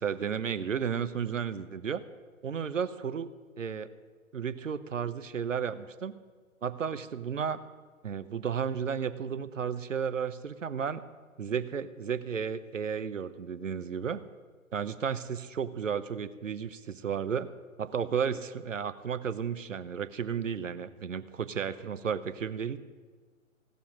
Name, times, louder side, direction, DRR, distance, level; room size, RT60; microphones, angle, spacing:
voice 1, 0.0-2.0 2.4-3.3 3.6-3.9 4.3-6.2 6.6-7.6 8.0-11.0 11.4-14.2 14.7-17.5 17.8-22.8, right 7 dB, 65° right, 13 dB, 0.9 m, -33 dB
17.0 x 7.0 x 9.2 m, 1.5 s
figure-of-eight pair, 130°, 41 cm